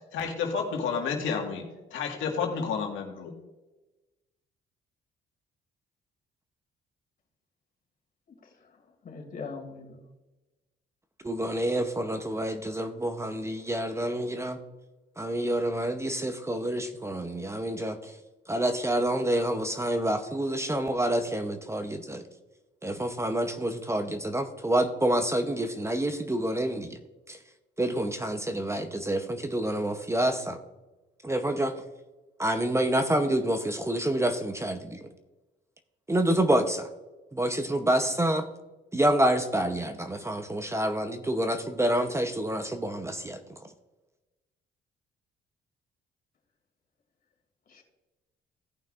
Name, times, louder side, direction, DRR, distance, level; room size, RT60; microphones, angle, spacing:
voice 1, 0.1-1.6 1.9-3.3, left 5 dB, 80° left, 2 dB, 1.7 m, -30 dB
voice 2, 8.3-10.0 47.7-47.8, left 4 dB, 45° left, 1 dB, 2.5 m, -42 dB
voice 3, 11.2-14.6 15.2-18.2 18.5-22.2 22.8-27.0 27.3-27.4 27.8-30.6 31.2-31.7 32.4-35.1 36.1-36.9 37.3-38.5 38.9-43.7, right 1 dB, 15° right, 8 dB, 0.7 m, -28 dB
16.5 x 5.7 x 2.5 m, 1.1 s
cardioid pair, 90°, 20 cm